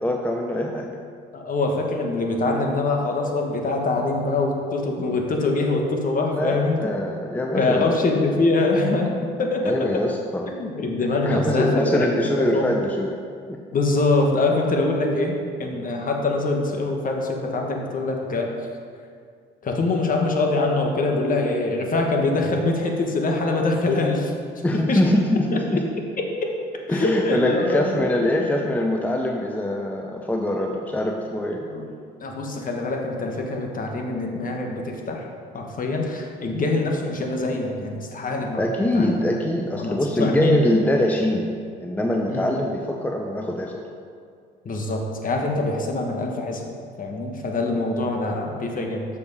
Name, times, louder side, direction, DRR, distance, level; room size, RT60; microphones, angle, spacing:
voice 1, 0.0-0.9 6.3-8.0 9.6-10.5 11.2-13.2 13.5-13.6 24.6-25.8 26.9-31.7 38.6-41.5 41.8-43.8 47.7-47.9, left 1 dB, 5° left, 1 dB, 0.6 m, -23 dB
voice 2, 1.3-6.9 7.5-9.1 9.4-10.1 10.5-12.7 13.7-18.5 19.6-24.3 24.7-25.0 25.7-25.8 26.2-26.6 26.9-28.1 28.3-28.5 31.7-31.8 32.2-35.2 35.5-39.1 39.8-40.6 42.3-42.6 44.6-46.6 47.0-49.1, left 2 dB, 40° left, 1 dB, 1.2 m, -24 dB
7.0 x 4.9 x 4.8 m, 2.2 s
supercardioid pair, 75°, 21 cm